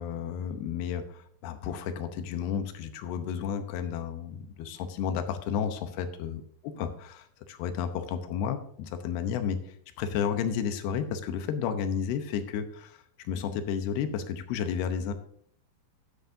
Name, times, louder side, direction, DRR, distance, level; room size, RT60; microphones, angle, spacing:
voice 1, 0.0-6.4 6.8-9.6 10.0-13.0 13.2-15.1, left 7 dB, 75° left, 7 dB, 2.6 m, -32 dB
13.0 x 9.5 x 2.7 m, 0.62 s
omnidirectional pair, 5.3 m